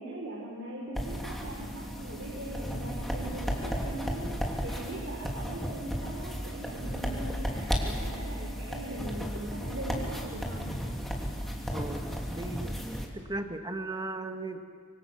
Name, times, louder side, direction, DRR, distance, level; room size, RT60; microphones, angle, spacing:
voice 1, 0.0-4.3 4.6-10.8, right 1 dB, 75° right, -3 dB, 4.2 m, -40 dB
sound 1, 0.9-13.1, equal, ahead, 3.0 m, -34 dB
voice 2, 12.3-12.7 13.1-14.6, right 2 dB, 20° right, 6 dB, 1.7 m, -36 dB
25.5 x 25.0 x 7.4 m, 2.1 s
head